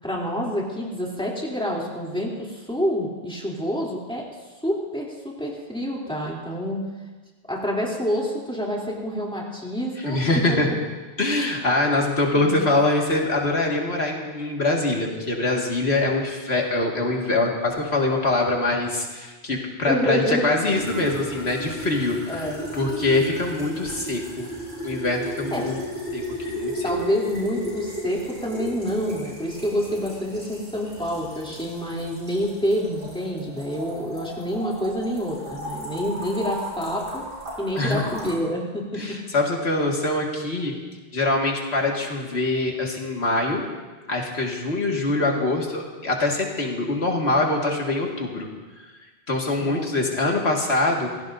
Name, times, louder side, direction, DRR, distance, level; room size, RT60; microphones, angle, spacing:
voice 1, 0.0-4.3 4.6-6.9 7.5-10.6 12.3-12.5 19.9-20.5 22.3-22.6 25.5-25.7 26.8-37.2 37.6-39.2 49.6-49.9, equal, 5° left, -4 dB, 3.0 m, -27 dB
voice 2, 10.0-10.7 11.2-22.5 22.8-24.5 24.8-25.8 26.1-26.2 26.5-26.8 37.8-38.1 39.0-40.7 41.1-43.6 44.1-48.5 49.3-51.1, left 2 dB, 75° left, -1 dB, 2.2 m, -24 dB
sound 1, 20.7-38.4, equal, 85° right, 5.6 m, -35 dB
27.0 x 16.5 x 2.6 m, 1.3 s
omnidirectional pair, 1.1 m